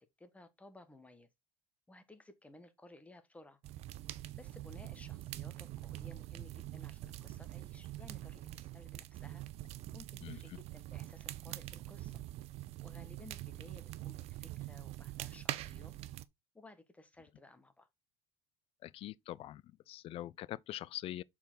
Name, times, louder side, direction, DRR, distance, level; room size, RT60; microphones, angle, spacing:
voice 1, 0.2-1.3 1.9-3.6 4.3-9.4 9.9-12.1 12.8-15.9 16.5-17.9, left 2 dB, 10° left, 1.4 m, -57 dB
sound 1, 3.6-16.2, right 15 dB, 60° right, 0.6 m, -44 dB
voice 2, 10.2-10.6 18.8-21.2, left 14 dB, 50° left, 0.4 m, -44 dB
6.9 x 4.5 x 3.9 m
supercardioid pair, 100°, 12 cm